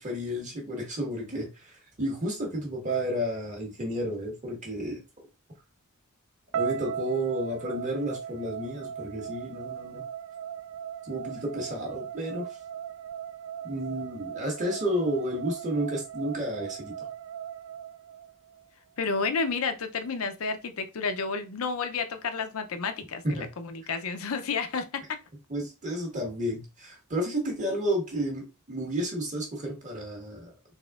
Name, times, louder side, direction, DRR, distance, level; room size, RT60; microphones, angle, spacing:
voice 1, 0.0-5.0 6.5-10.0 11.0-12.5 13.6-16.9 23.2-23.5 25.5-30.5, equal, 35° right, 1.4 m, -31 dB
sound 1, 6.5-18.7, right 8 dB, 70° right, 0.3 m, -38 dB
voice 2, 19.0-25.2, left 4 dB, 80° left, 0.6 m, -31 dB
4.1 x 3.6 x 2.4 m
head